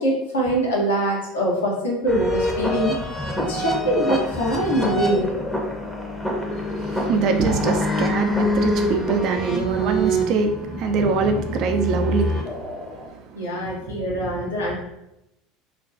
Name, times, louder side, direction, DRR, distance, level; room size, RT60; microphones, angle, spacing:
voice 1, 0.0-3.0 3.5-5.3 13.3-14.7, right 1 dB, 85° left, -3 dB, 0.7 m, -23 dB
sound 1, 2.1-13.1, equal, 10° left, 0.6 m, -26 dB
voice 2, 6.5-12.7 13.1-13.7, right 4 dB, 55° right, 5 dB, 0.3 m, -24 dB
2.4 x 2.2 x 2.5 m, 0.86 s
hypercardioid pair, 75°, 0 cm